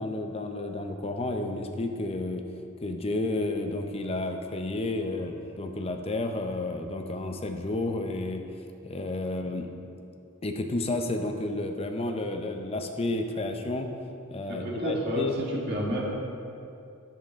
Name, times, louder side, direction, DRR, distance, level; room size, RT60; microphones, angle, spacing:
voice 1, 0.0-2.4 2.8-8.4 8.8-9.7 10.4-13.9 14.3-15.3, left 2 dB, 30° left, 5 dB, 0.6 m, -31 dB
voice 2, 14.5-16.1, equal, 50° right, -4 dB, 1.8 m, -30 dB
10.5 x 7.5 x 3.6 m, 2.6 s
head